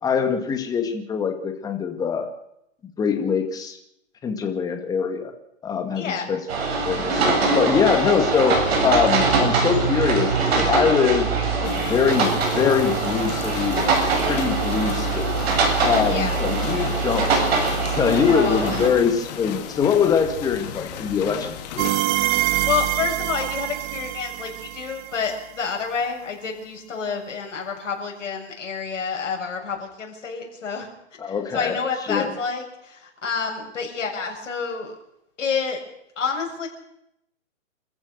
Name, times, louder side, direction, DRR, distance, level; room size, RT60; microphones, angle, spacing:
voice 1, 0.0-2.3 3.0-3.8 4.2-5.3 5.6-6.4 6.7-8.6 8.8-11.3 11.6-14.0 14.3-15.3 15.8-17.5 17.9-21.9 31.2-31.8 32.1-32.3, left 6 dB, 10° left, 6 dB, 1.9 m, -23 dB
voice 2, 6.0-6.3 16.1-16.4 18.1-18.9 22.6-30.9 31.2-35.0 35.4-35.8 36.2-36.7, left 5 dB, 70° left, 1 dB, 6.9 m, -28 dB
sound 1, 6.5-18.9, right 4 dB, 50° right, 7.7 m, -22 dB
sound 2, 11.6-21.9, left 9 dB, 30° left, 2.2 m, -35 dB
sound 3, 21.8-25.5, right 14 dB, 15° right, 0.7 m, -25 dB
27.0 x 14.5 x 6.6 m, 0.80 s
hypercardioid pair, 155°, 39 cm